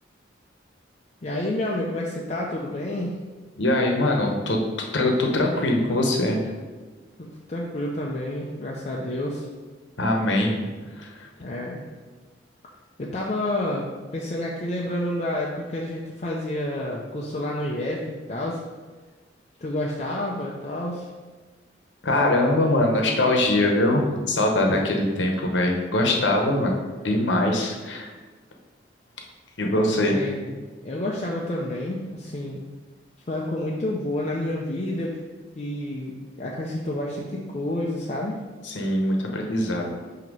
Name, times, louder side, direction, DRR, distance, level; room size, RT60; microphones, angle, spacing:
voice 1, 1.2-3.2 7.2-9.5 11.4-11.8 13.0-13.9 14.1-18.0 18.3-18.6 19.6-21.1 30.1-30.5 30.8-32.6 33.3-35.2 35.6-38.4, left 1 dB, 35° left, -3 dB, 0.5 m, -29 dB
voice 2, 3.6-4.6 4.9-6.4 10.0-10.7 10.9-11.3 22.0-26.8 27.0-28.1 29.6-30.2 38.6-39.9, left 1 dB, 80° left, 2 dB, 0.9 m, -22 dB
6.0 x 2.9 x 5.3 m, 1.4 s
head